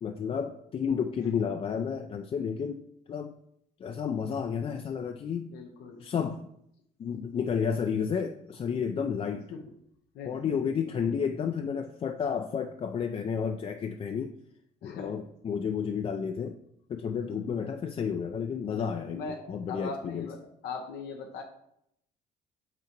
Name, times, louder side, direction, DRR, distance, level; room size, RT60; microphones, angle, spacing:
voice 1, 0.0-2.8 3.1-3.3 3.8-5.5 6.0-6.4 7.0-9.5 10.2-14.3 14.8-16.6 16.9-19.2 19.5-20.3, left 7 dB, 35° left, 7 dB, 0.4 m, -31 dB
voice 2, 5.5-6.0 9.5-9.6 10.1-10.9 14.8-15.2 17.0-17.5 18.7-21.4, left 4 dB, 80° left, 4 dB, 0.8 m, -41 dB
5.9 x 3.8 x 4.4 m, 0.74 s
cardioid pair, 110°, 17 cm